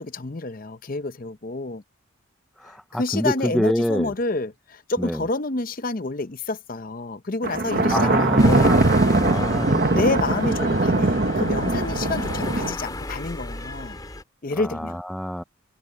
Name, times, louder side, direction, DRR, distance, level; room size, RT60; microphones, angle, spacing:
voice 1, 0.0-1.8 2.6-8.7 9.1-9.2 9.9-14.0 14.4-15.0, left 2 dB, 40° left, 0.7 m, -29 dB
voice 2, 2.6-4.1 5.0-5.2 7.9-8.8 9.2-10.0 14.6-15.4, equal, ahead, 0.4 m, -26 dB
Thunder, 7.4-12.7, right 2 dB, 45° right, 1.1 m, -21 dB
sound 1, 7.7-12.7, left 2 dB, 85° left, 5.1 m, -34 dB
sound 2, 8.4-14.2, left 1 dB, 20° left, 2.5 m, -34 dB
head